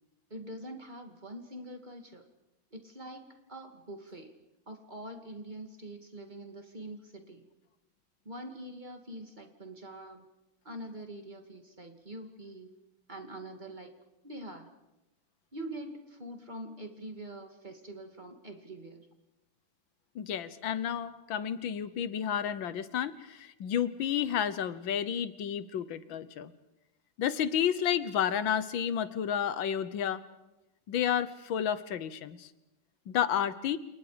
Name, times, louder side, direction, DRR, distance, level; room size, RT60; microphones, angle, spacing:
voice 1, 0.3-2.2 2.7-4.4 4.7-7.5 8.2-10.3 10.6-12.7 13.1-13.9 14.2-14.7 15.5-19.1, right 1 dB, 25° right, 4 dB, 2.5 m, -44 dB
voice 2, 20.2-26.5 27.2-30.2 30.9-32.5 33.1-33.8, left 9 dB, 85° left, 14 dB, 1.8 m, -31 dB
29.0 x 29.0 x 5.1 m, 0.97 s
omnidirectional pair, 2.1 m